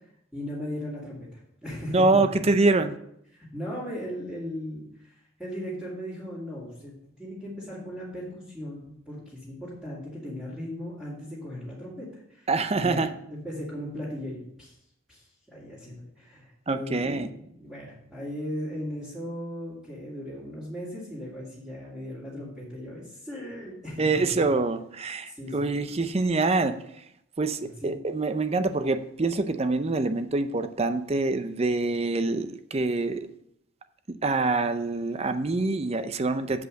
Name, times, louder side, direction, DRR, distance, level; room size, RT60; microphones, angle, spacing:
voice 1, 0.3-2.4 3.3-12.5 12.7-14.8 15.1-17.3 17.6-24.5 25.3-25.7 27.6-27.9, equal, ahead, -12 dB, 2.6 m, -37 dB
voice 2, 1.9-3.0 12.5-13.1 16.7-17.3 24.0-26.8 27.4-33.3 34.1-36.7, right 3 dB, 30° right, 10 dB, 0.5 m, -25 dB
8.0 x 5.4 x 6.4 m, 0.74 s
head